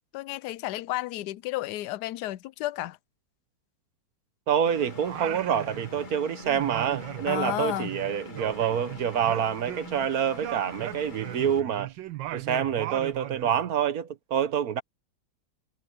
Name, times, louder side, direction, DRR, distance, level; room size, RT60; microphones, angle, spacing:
voice 1, 0.1-3.0 7.2-8.0, left 15 dB, 75° left, 1.1 m, -32 dB
voice 2, 4.5-11.9 12.3-14.8, right 8 dB, 60° right, 1.2 m, -27 dB
Engine, 4.7-11.6, left 3 dB, 30° left, 1.1 m, -44 dB
Singing, 5.0-6.2 6.4-10.1 10.4-13.6, right 14 dB, 90° right, 1.5 m, -38 dB
omnidirectional pair, 2.0 m